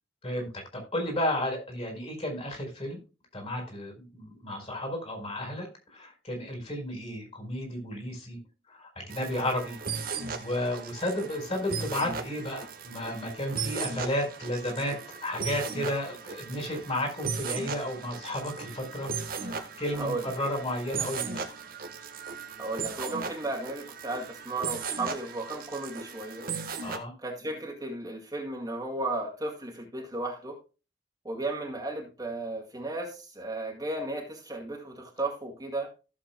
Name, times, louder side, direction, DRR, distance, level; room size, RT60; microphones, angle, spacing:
voice 1, 0.2-3.0 3.3-8.4 8.7-21.4 26.8-27.1, left 1 dB, 30° left, 2 dB, 4.2 m, -33 dB
sound 1, 9.1-27.0, right 5 dB, 50° right, 1.3 m, -37 dB
voice 2, 19.9-20.3 22.6-26.4 27.2-30.6 31.2-35.9, right 2 dB, 20° right, 0 dB, 2.1 m, -34 dB
15.0 x 7.2 x 2.2 m, 0.32 s
head